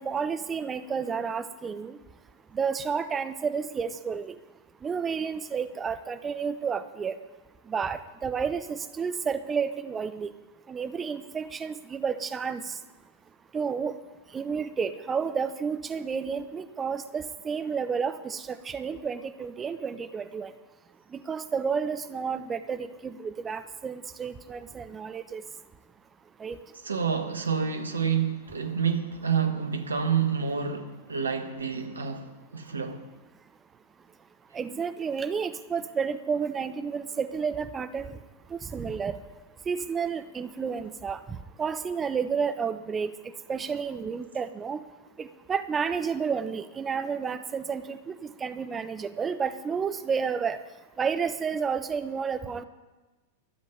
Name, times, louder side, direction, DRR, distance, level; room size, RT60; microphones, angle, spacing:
voice 1, 0.0-2.0 2.5-4.3 4.8-7.2 7.7-10.3 10.7-12.6 13.5-13.9 14.3-20.5 21.1-25.4 26.4-26.6 34.5-38.2 38.7-39.2 39.7-41.2 41.6-43.1 43.5-44.8 45.2-50.6 51.0-52.6, right 6 dB, 20° right, 0.8 m, -31 dB
voice 2, 26.8-33.1, right 6 dB, 75° right, 1.4 m, -28 dB
13.0 x 7.5 x 9.4 m
figure-of-eight pair, 95°, 0 cm